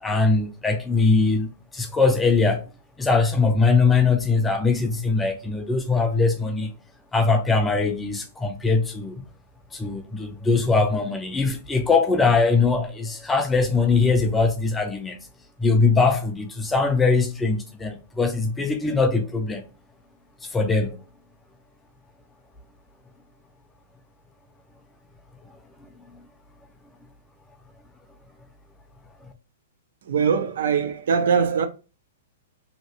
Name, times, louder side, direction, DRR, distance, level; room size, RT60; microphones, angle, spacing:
voice 1, 0.0-2.6 3.0-6.7 7.1-9.2 9.7-15.2 15.6-19.7 20.4-21.0 25.8-26.3 29.2-29.3, left 4 dB, 10° left, 0.3 m, -21 dB
voice 2, 30.1-31.7, right 6 dB, 65° right, 0.4 m, -22 dB
2.8 x 2.7 x 2.9 m
hypercardioid pair, 170°, 0 cm